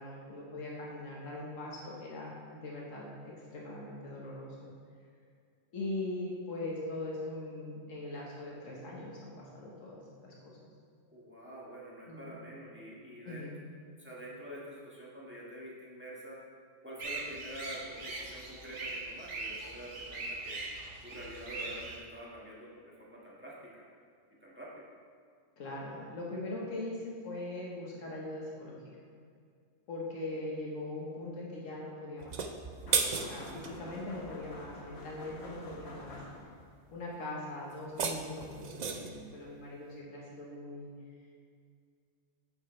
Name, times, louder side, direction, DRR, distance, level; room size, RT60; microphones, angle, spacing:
voice 1, 0.0-4.7 5.7-10.5 12.1-12.4 13.2-13.6 25.6-28.8 29.9-32.4 33.2-36.2 36.9-40.9, left 2 dB, 90° left, -4 dB, 1.7 m, -41 dB
voice 2, 11.1-13.5 14.0-16.4 16.8-20.6 21.0-23.8 24.4-24.8 30.3-30.5, equal, 10° right, -7 dB, 1.7 m, -47 dB
sound 1, 17.0-22.0, right 3 dB, 70° right, 1.4 m, -41 dB
Small metal bucket being pushed, 32.2-33.8 37.7-39.2, right 5 dB, 50° right, 0.5 m, -34 dB
door metal knock heavy bang from other side, 32.9-36.7, left 2 dB, 55° left, 1.4 m, -47 dB
9.0 x 7.0 x 3.3 m, 2.2 s
omnidirectional pair, 1.3 m